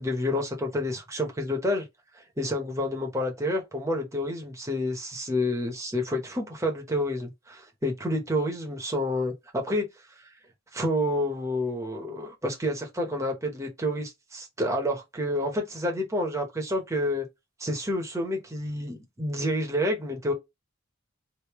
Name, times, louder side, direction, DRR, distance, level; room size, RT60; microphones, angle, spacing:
voice 1, 0.0-1.9 2.4-9.9 10.7-17.3 17.6-20.3, left 1 dB, 15° right, 1.0 m, -29 dB
3.3 x 2.7 x 3.0 m
head